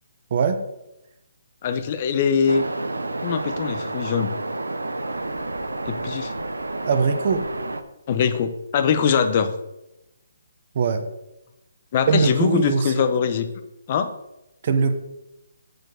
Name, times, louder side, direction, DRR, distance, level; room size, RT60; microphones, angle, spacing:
voice 1, 0.3-0.6 6.8-7.4 10.7-11.0 12.1-13.0 14.6-14.9, right 5 dB, 45° right, 7 dB, 1.0 m, -21 dB
voice 2, 1.6-2.6 3.2-4.3 5.9-6.3 8.1-9.5 11.9-13.5 13.9-14.1, left 6 dB, 40° left, 9 dB, 0.9 m, -22 dB
Waves surf, 2.5-7.8, right 2 dB, 85° right, 0.8 m, -30 dB
8.0 x 4.5 x 6.4 m, 0.91 s
figure-of-eight pair, 145°, 0 cm